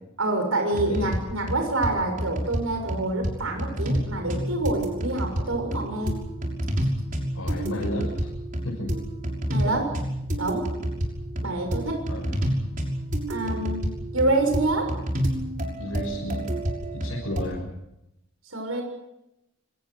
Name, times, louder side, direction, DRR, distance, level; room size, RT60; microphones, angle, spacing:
voice 1, 0.2-6.2 9.5-9.9 10.4-10.7 11.4-12.0 13.3-14.9 18.5-18.8, right 2 dB, 80° right, 4 dB, 6.7 m, -27 dB
sound 1, 0.8-1.2 1.5-1.9 2.2-2.6 2.9-3.3 3.6-4.0 4.3-17.4, equal, 40° right, 6.2 m, -29 dB
voice 2, 7.3-8.3 8.6-8.9 9.6-9.8 12.1-12.4 15.8-16.4 16.9-17.7, left 1 dB, 85° left, -3 dB, 7.2 m, -32 dB
28.5 x 25.0 x 6.5 m, 0.86 s
head